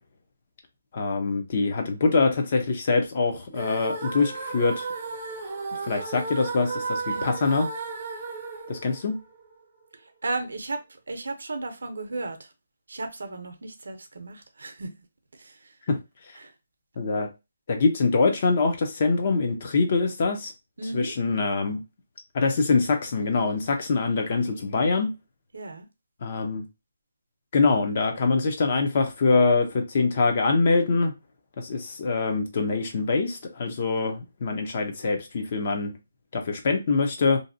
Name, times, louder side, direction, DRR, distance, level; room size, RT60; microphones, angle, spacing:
voice 1, 0.9-4.8 5.8-7.7 8.7-9.1 15.9-16.0 17.0-17.3 17.7-20.5 20.9-21.8 22.3-25.1 26.2-26.7 27.5-31.1 31.6-35.9 36.3-37.4, left 4 dB, 30° left, 0.5 m, -24 dB
sound 1, 3.5-9.6, right 4 dB, 25° right, 0.5 m, -34 dB
voice 2, 10.2-10.8 11.1-12.5 12.9-14.9 15.3-15.6 16.4-16.5 20.8-21.1 25.5-25.9, right 2 dB, 80° right, 0.6 m, -34 dB
2.6 x 2.0 x 2.6 m
hypercardioid pair, 175°, 0 cm